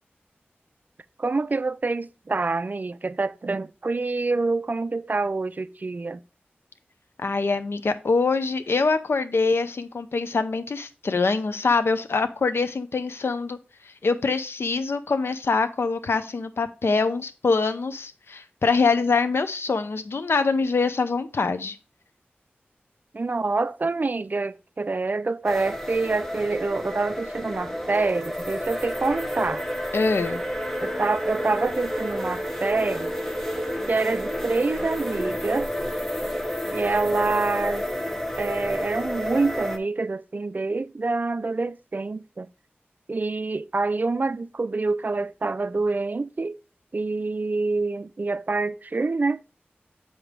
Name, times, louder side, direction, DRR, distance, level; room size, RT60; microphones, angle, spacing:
voice 1, 1.2-6.2 23.1-29.6 30.8-33.1 33.9-35.7 36.7-37.9 38.4-42.5 43.1-46.6 46.9-49.4, right 3 dB, 45° right, 0.4 m, -26 dB
voice 2, 7.2-21.8 29.9-30.4, left 4 dB, 75° left, 0.6 m, -24 dB
sound 1, 25.4-39.8, equal, 10° left, 1.2 m, -30 dB
7.7 x 5.1 x 3.6 m
wide cardioid pair, 60°, 4 cm